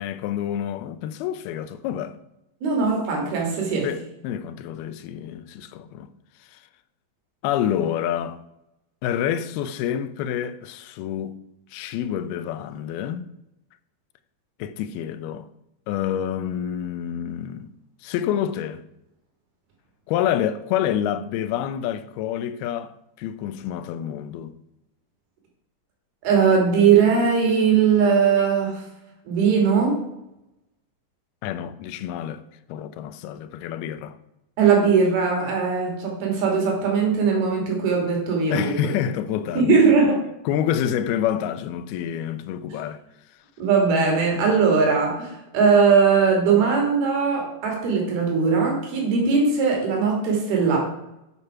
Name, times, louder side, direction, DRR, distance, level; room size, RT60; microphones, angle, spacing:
voice 1, 0.0-2.2 3.8-6.1 6.5-6.6 7.4-8.4 9.0-11.4 11.7-13.3 14.6-15.5 15.9-17.7 18.0-18.8 20.1-24.5 31.4-32.4 32.7-34.2 38.5-39.8 40.5-43.0, left 10 dB, 90° left, 2.6 m, -28 dB
voice 2, 2.6-3.9 26.2-28.8 29.3-30.1 34.6-38.7 39.6-40.2 42.7-42.8 43.6-50.8, right 5 dB, 85° right, 4.6 m, -20 dB
9.6 x 7.9 x 5.7 m
omnidirectional pair, 4.3 m